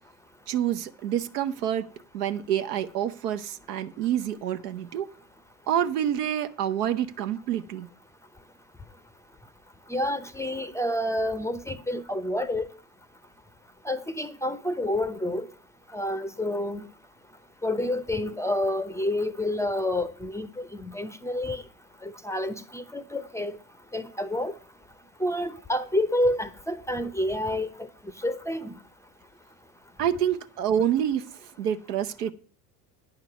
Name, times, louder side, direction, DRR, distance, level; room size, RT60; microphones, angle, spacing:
voice 1, 0.5-1.9 2.1-5.1 5.7-7.9 30.0-32.3, right 10 dB, 75° right, 0.9 m, -27 dB
voice 2, 9.9-12.7 13.8-15.5 15.9-16.9 17.6-21.6 22.0-23.6 23.9-24.5 25.2-27.7 28.2-28.7, left 1 dB, 5° left, 0.6 m, -28 dB
9.3 x 5.9 x 6.7 m
hypercardioid pair, 70°, 48 cm